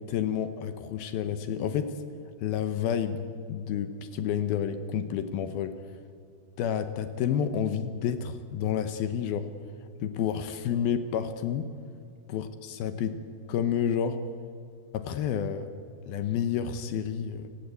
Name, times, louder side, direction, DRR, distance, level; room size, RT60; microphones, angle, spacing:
voice 1, 0.0-2.0 2.4-5.7 6.6-9.5 10.0-11.7 12.3-13.2 13.5-14.2 14.9-15.7 16.1-17.5, left 8 dB, 70° left, 10 dB, 2.5 m, -30 dB
29.0 x 17.5 x 8.3 m, 2.3 s
omnidirectional pair, 5.0 m